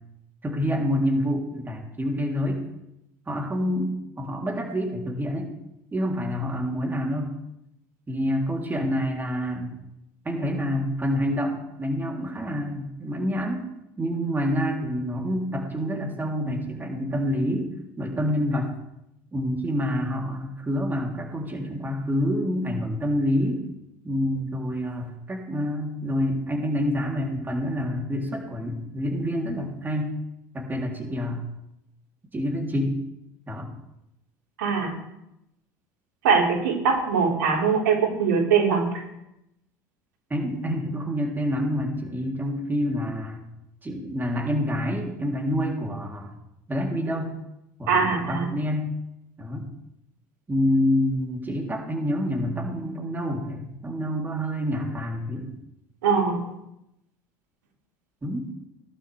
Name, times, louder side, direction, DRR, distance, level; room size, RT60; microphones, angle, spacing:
voice 1, 0.4-2.6 3.3-5.5 5.9-7.3 8.1-9.7 10.2-13.7 14.0-17.7 18.0-18.7 19.3-23.7 24.0-30.1 30.5-31.4 32.3-33.0 33.5-33.7 40.3-43.4 43.8-46.3 46.7-47.3 47.8-48.9 49.4-49.7 50.5-55.5 58.2-58.5, equal, 20° right, 0 dB, 3.7 m, -27 dB
voice 2, 34.6-34.9 36.2-39.0 47.9-48.5 56.0-56.4, right 5 dB, 90° right, -2 dB, 4.9 m, -22 dB
19.5 x 12.0 x 3.6 m, 0.86 s
supercardioid pair, 95°, 10 cm